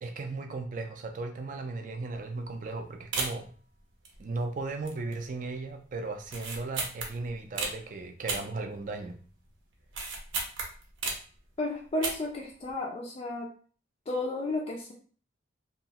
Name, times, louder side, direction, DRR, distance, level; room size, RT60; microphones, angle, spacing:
voice 1, 0.0-3.5 4.2-9.2, right 3 dB, 40° right, 5 dB, 0.4 m, -36 dB
sound 1, 2.1-2.4 2.7-2.8 3.1-3.6 4.0-4.5 4.8-5.3 5.5-5.6 6.2-7.8 8.3-9.2 9.5-11.4 11.9-12.4 12.7-12.8, right 3 dB, 75° right, 0.7 m, -34 dB
voice 2, 11.6-13.5 14.1-14.9, left 2 dB, 30° left, -1 dB, 0.3 m, -33 dB
2.9 x 2.3 x 2.8 m, 0.42 s
head